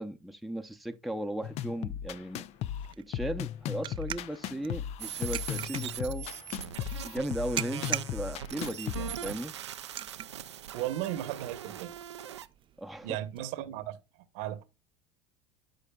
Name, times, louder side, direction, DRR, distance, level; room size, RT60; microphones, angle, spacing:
voice 1, 0.0-2.4 3.0-6.3 7.0-9.5 12.8-13.2, right 1 dB, ahead, 0.7 m, -36 dB
sound 1, 1.4-9.4, left 11 dB, 50° left, 0.5 m, -37 dB
sound 2, 2.1-13.4, right 12 dB, 35° right, 0.4 m, -44 dB
sound 3, 5.0-12.5, right 10 dB, 90° right, 0.5 m, -41 dB
voice 2, 10.7-12.0 13.0-14.6, right 13 dB, 65° right, 1.1 m, -36 dB
13.0 x 4.9 x 2.3 m
hypercardioid pair, 80°, 14 cm